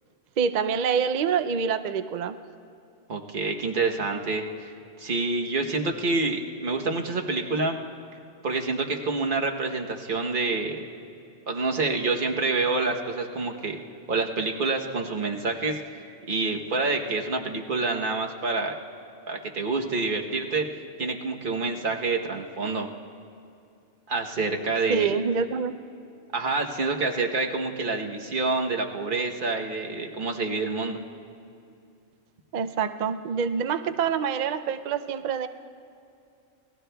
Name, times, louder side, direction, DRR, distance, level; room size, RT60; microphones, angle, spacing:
voice 1, 0.4-2.4 24.9-25.7 32.5-35.5, right 6 dB, 70° right, 8 dB, 0.4 m, -26 dB
voice 2, 3.1-7.8 8.4-10.8 11.5-13.8 14.1-15.8 16.3-18.7 19.3-20.6 21.0-22.9 24.1-25.1 26.3-31.0, right 3 dB, 45° right, 2 dB, 1.1 m, -27 dB
27.0 x 19.5 x 2.3 m, 2.6 s
omnidirectional pair, 1.4 m